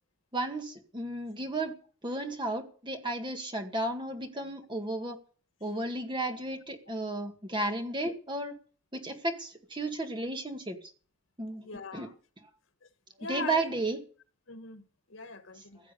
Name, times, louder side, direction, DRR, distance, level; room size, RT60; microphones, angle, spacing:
voice 1, 0.3-1.8 2.0-5.2 5.6-8.5 8.9-10.9 11.4-11.7 11.9-12.1 12.4-12.5 13.3-14.0 15.8-15.9, right 2 dB, 25° right, 1.9 m, -33 dB
voice 2, 11.6-12.1 13.2-13.6 14.5-15.8, left 4 dB, 85° left, 1.9 m, -41 dB
16.0 x 7.5 x 8.5 m
head